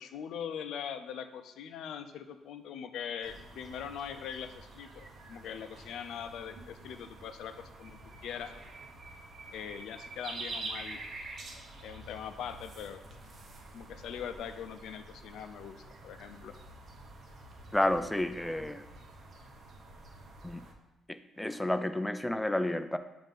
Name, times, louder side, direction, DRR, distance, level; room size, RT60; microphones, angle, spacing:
voice 1, 0.0-8.5 9.5-11.0 11.8-13.0 13.7-15.8 16.0-16.5, left 8 dB, 80° left, 9 dB, 0.4 m, -41 dB
sound 1, 3.2-20.7, right 2 dB, 55° right, 0.8 m, -47 dB
voice 2, 17.7-18.8 20.4-20.6 21.1-23.0, left 1 dB, 5° left, 9 dB, 0.3 m, -31 dB
7.2 x 2.6 x 5.2 m, 0.98 s
cardioid pair, 90°, 0 cm